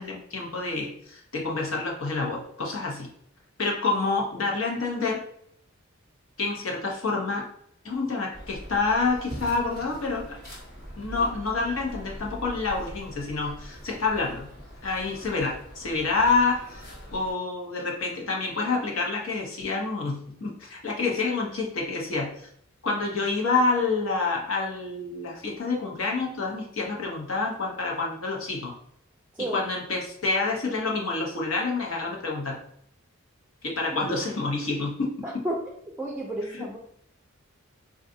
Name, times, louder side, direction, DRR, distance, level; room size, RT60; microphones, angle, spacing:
voice 1, 0.0-3.1 3.6-5.2 6.4-7.4 7.8-10.4 11.0-14.5 14.8-22.5 22.8-28.7 29.5-32.6 33.6-35.1, left 3 dB, 75° left, -1 dB, 0.8 m, -28 dB
sound 1, 8.3-17.3, equal, 50° left, 1.1 m, -42 dB
voice 2, 35.2-35.6 36.0-36.8, right 1 dB, 10° right, -1 dB, 0.4 m, -31 dB
3.7 x 2.4 x 2.6 m, 0.67 s
head